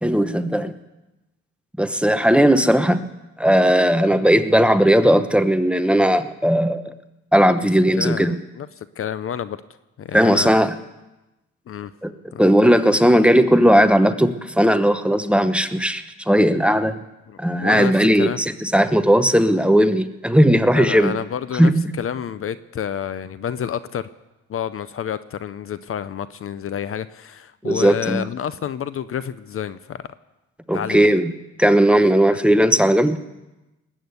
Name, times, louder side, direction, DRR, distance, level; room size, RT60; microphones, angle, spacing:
voice 1, 0.0-0.7 1.8-3.1 3.4-6.9 7.3-8.3 10.1-10.8 12.0-12.1 12.4-17.0 17.4-21.1 21.6-21.9 27.6-28.3 30.7-31.3 31.6-33.2, equal, 5° right, 9 dB, 0.9 m, -17 dB
voice 2, 8.0-8.7 9.0-9.6 10.0-10.5 11.7-11.9 12.3-12.5 17.3-18.4 20.8-21.7 22.0-24.0 24.5-30.1 30.7-31.2 32.3-32.4, left 9 dB, 45° left, 15 dB, 0.6 m, -29 dB
20.0 x 8.7 x 8.0 m, 1.0 s
cardioid pair, 90°, 30 cm